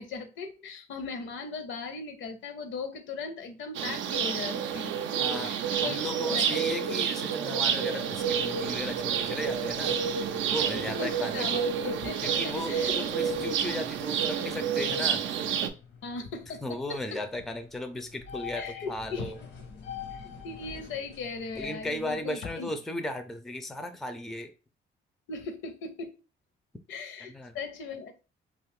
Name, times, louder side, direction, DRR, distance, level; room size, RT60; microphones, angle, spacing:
voice 1, 0.0-6.7 10.6-13.3 16.0-17.2 18.6-19.3 20.1-22.7 25.3-26.1 26.9-28.2, left 4 dB, 75° left, 6 dB, 0.7 m, -38 dB
sound 1, 3.7-15.7, right 7 dB, 75° right, 0.4 m, -29 dB
voice 2, 5.2-5.6 5.8-10.0 10.4-11.6 12.2-15.2 16.6-19.4 21.6-24.5 27.3-27.6, left 1 dB, ahead, 7 dB, 0.4 m, -36 dB
sound 2, 7.8-22.2, left 7 dB, 90° left, 1.0 m, -48 dB
2.5 x 2.3 x 3.5 m, 0.33 s
cardioid pair, 90°, 20 cm